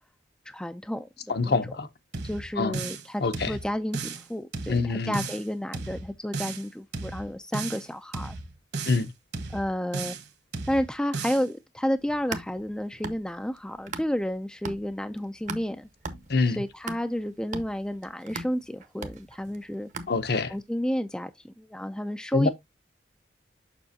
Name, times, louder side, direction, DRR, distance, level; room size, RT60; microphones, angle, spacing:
voice 1, 0.5-1.6 2.2-8.4 9.5-10.2 10.7-15.9 16.5-19.9 20.5-21.3 21.6-22.5, equal, 5° left, 0.3 m, -31 dB
voice 2, 1.3-1.9 2.6-2.8 3.2-3.6 4.7-5.2 8.9-9.1 16.3-16.6 20.1-20.5 22.3-22.5, left 3 dB, 55° left, 0.7 m, -25 dB
sound 1, 2.1-3.1 3.3-4.3 4.5-5.5 5.7-6.7 6.9-7.9 8.1-9.1 9.3-10.3 10.5-11.5, right 4 dB, 55° right, 1.3 m, -35 dB
sound 2, 12.0-14.3 14.7-20.6, right 3 dB, 40° right, 0.8 m, -40 dB
6.9 x 5.8 x 2.7 m
head